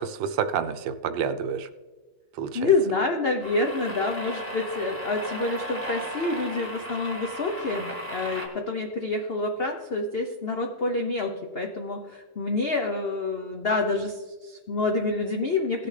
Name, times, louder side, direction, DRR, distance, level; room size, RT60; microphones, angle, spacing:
voice 1, 0.0-1.7 2.3-2.7, right 7 dB, 75° right, 10 dB, 1.3 m, -29 dB
voice 2, 2.5-15.9, left 3 dB, 80° left, 3 dB, 0.5 m, -27 dB
sound 1, 3.4-8.5, equal, 5° left, 1.5 m, -36 dB
17.0 x 6.9 x 3.3 m, 1.3 s
omnidirectional pair, 2.2 m